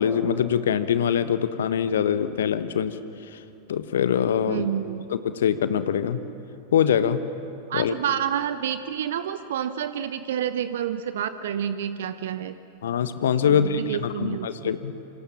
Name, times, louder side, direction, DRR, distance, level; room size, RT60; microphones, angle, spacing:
voice 1, 0.0-3.0 3.3-3.4 3.7-4.7 5.1-6.2 6.7-7.2 7.7-7.9 12.8-15.0, left 8 dB, 60° left, 11 dB, 1.3 m, -23 dB
voice 2, 4.5-5.1 7.7-12.6 13.5-14.7, right 9 dB, 60° right, 12 dB, 0.8 m, -29 dB
28.0 x 26.0 x 7.4 m, 2.7 s
figure-of-eight pair, 90°, 0 cm